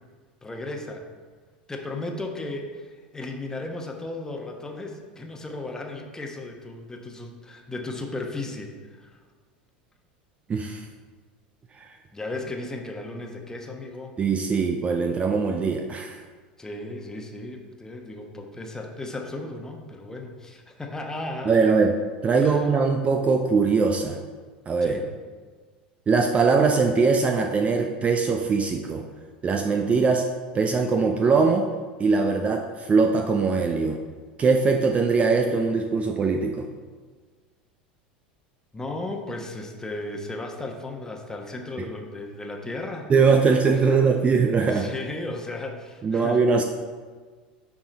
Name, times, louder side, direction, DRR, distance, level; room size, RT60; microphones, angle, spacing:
voice 1, 0.4-1.0 1.7-9.1 12.1-14.1 16.6-21.7 22.4-22.7 24.8-25.0 38.7-43.1 43.8-43.9 44.7-46.5, left 2 dB, 10° left, 2 dB, 1.1 m, -35 dB
voice 2, 10.5-10.8 11.8-11.9 14.2-16.2 21.4-22.0 22.2-24.2 24.7-25.0 26.1-29.0 29.4-30.3 30.5-31.7 32.0-34.0 34.4-36.7 41.8-41.9 43.1-44.9 46.0-46.6, right 4 dB, 25° right, 4 dB, 0.5 m, -21 dB
9.8 x 3.8 x 4.2 m, 1.5 s
figure-of-eight pair, 80°, 5 cm